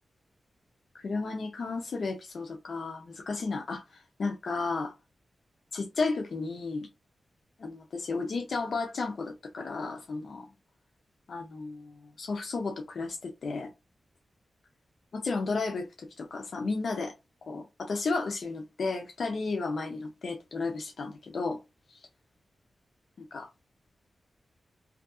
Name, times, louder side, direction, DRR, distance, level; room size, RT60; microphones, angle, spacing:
voice 1, 1.0-3.8 4.2-4.9 5.7-6.9 7.6-10.5 11.3-11.9 12.2-13.7 15.1-17.1 17.5-21.6 21.9-22.0 23.2-23.5, left 3 dB, 55° left, 0.4 m, -33 dB
2.6 x 2.4 x 2.3 m
wide cardioid pair, 175°, 0 cm